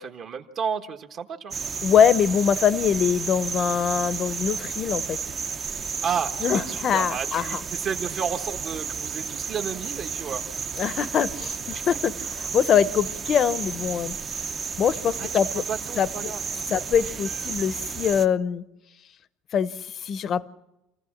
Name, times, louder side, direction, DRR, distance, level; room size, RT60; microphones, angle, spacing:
voice 1, 0.0-1.5 6.0-11.0 11.7-12.0 15.2-15.3 15.5-17.1, right 6 dB, 40° right, 4 dB, 1.4 m, -32 dB
sound 1, 1.5-18.3, right 6 dB, 25° right, 0.8 m, -32 dB
voice 2, 1.8-5.2 6.4-7.6 10.8-14.1 14.8-15.6 16.0-16.3 16.7-18.6 19.5-20.5, left 8 dB, 40° left, 15 dB, 0.8 m, -23 dB
27.0 x 15.0 x 7.3 m, 0.94 s
cardioid pair, 140°, 0 cm